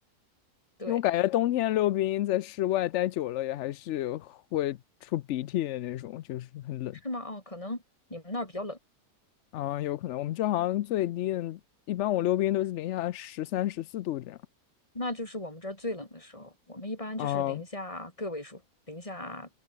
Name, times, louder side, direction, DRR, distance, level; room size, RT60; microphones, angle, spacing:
voice 1, 0.9-7.0 9.5-11.6 11.9-14.4 17.2-17.6, left 14 dB, 80° left, 0.6 m, -29 dB
voice 2, 7.0-7.8 8.1-8.8 14.9-18.6 18.9-19.5, left 1 dB, 20° left, 4.1 m, -37 dB
omnidirectional pair, 1.7 m